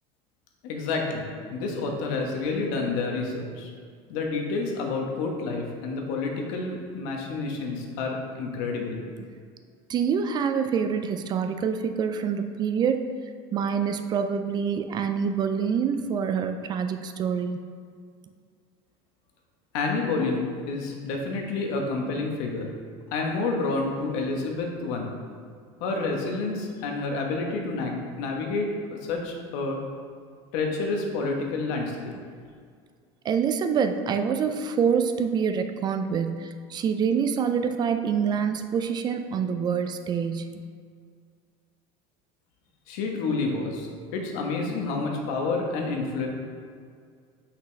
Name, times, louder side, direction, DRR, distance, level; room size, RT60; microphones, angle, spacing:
voice 1, 0.6-3.7 4.1-9.0 19.7-22.7 23.1-25.1 25.8-29.8 30.5-32.1 42.9-46.3, left 3 dB, 75° left, 1 dB, 1.1 m, -29 dB
voice 2, 9.9-13.1 13.5-17.6 33.2-40.6, right 6 dB, 30° right, 8 dB, 0.3 m, -26 dB
5.9 x 5.8 x 3.3 m, 2.1 s
supercardioid pair, 130°, 14 cm